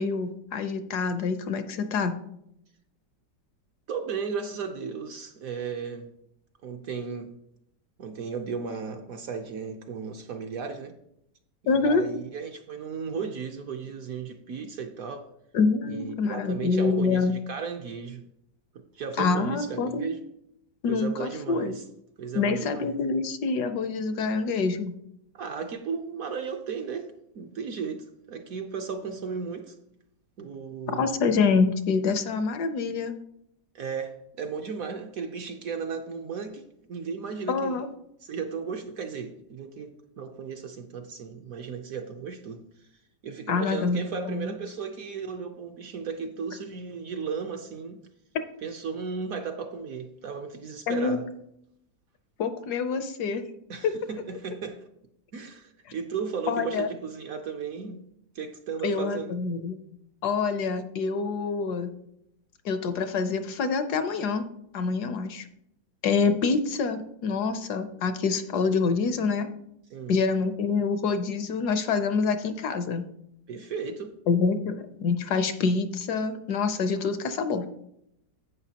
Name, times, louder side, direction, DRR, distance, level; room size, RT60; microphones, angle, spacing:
voice 1, 0.0-2.2 11.7-12.0 15.5-17.3 19.2-20.0 20.8-21.8 22.3-25.0 30.9-33.1 37.5-37.9 43.5-44.5 50.9-51.2 52.4-53.4 53.8-54.0 56.5-56.9 58.8-59.8 60.2-61.9 62.6-64.4 64.7-65.5 66.0-69.5 70.1-73.1 74.3-77.7, left 4 dB, 70° left, 9 dB, 1.1 m, -26 dB
voice 2, 3.9-6.1 6.6-7.3 8.0-10.9 11.6-15.3 15.9-18.2 18.7-20.2 20.9-21.8 22.2-23.0 25.3-29.8 30.4-31.1 33.7-37.8 38.2-42.9 43.2-48.0 48.6-51.3 53.7-54.8 55.3-58.0 58.3-59.3 69.9-70.1 73.5-74.1, right 6 dB, 65° right, 5 dB, 1.0 m, -35 dB
11.0 x 8.4 x 2.8 m, 0.78 s
omnidirectional pair, 2.0 m